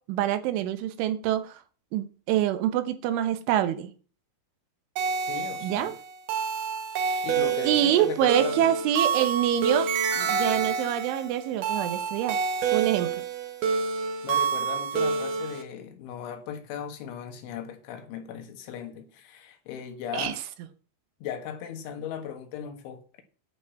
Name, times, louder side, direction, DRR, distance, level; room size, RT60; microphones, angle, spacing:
voice 1, 0.1-1.6 1.9-3.9 5.6-5.9 7.1-7.2 7.6-9.9 10.1-12.4 12.7-13.1 20.1-20.4, right 11 dB, 85° right, 3.4 m, -26 dB
sound 1, 5.0-15.6, right 5 dB, 65° right, 2.1 m, -28 dB
voice 2, 5.3-6.0 7.0-8.7 14.2-20.4 21.2-23.2, left 9 dB, 80° left, 4.0 m, -37 dB
11.0 x 4.8 x 8.2 m
omnidirectional pair, 5.4 m